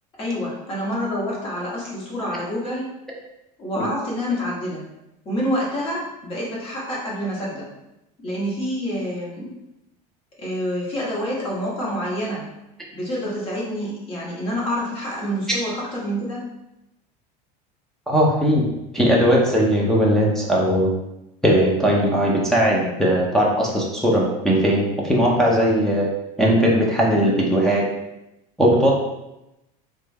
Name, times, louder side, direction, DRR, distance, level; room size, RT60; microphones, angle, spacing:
voice 1, 0.2-2.9 3.6-4.9 5.2-7.7 8.2-9.5 10.4-12.5 12.9-16.4, equal, 30° left, -5 dB, 1.0 m, -27 dB
voice 2, 18.1-18.7 18.9-20.9 21.4-26.1 26.4-27.9 28.6-28.9, equal, ahead, -4 dB, 0.3 m, -18 dB
3.1 x 2.2 x 3.2 m, 0.91 s
cardioid pair, 170°, 20 cm